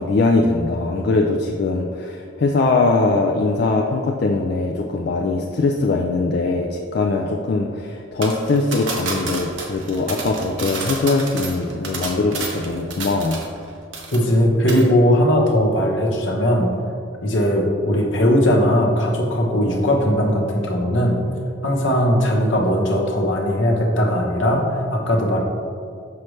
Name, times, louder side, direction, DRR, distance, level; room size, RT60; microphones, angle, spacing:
voice 1, 0.0-13.4, left 3 dB, 50° left, 1 dB, 0.4 m, -21 dB
sound 1, 8.2-13.7 13.9-14.4 14.7-14.9, right 3 dB, 70° right, 0.9 m, -30 dB
voice 2, 14.1-16.7 17.2-21.2 21.6-25.4, equal, 70° left, 0 dB, 1.0 m, -18 dB
6.3 x 5.7 x 3.2 m, 2.3 s
head